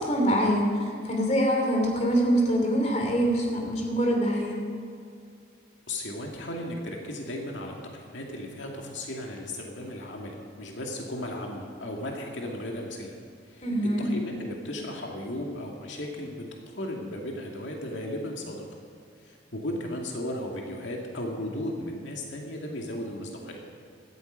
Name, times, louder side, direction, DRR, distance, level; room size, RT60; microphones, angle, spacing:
voice 1, 0.0-4.6 13.6-14.0, equal, 35° left, 1 dB, 3.1 m, -24 dB
voice 2, 5.9-13.2 13.4-18.6 19.2-23.6, left 1 dB, 85° left, 0 dB, 2.2 m, -35 dB
16.5 x 13.5 x 5.3 m, 2.3 s
head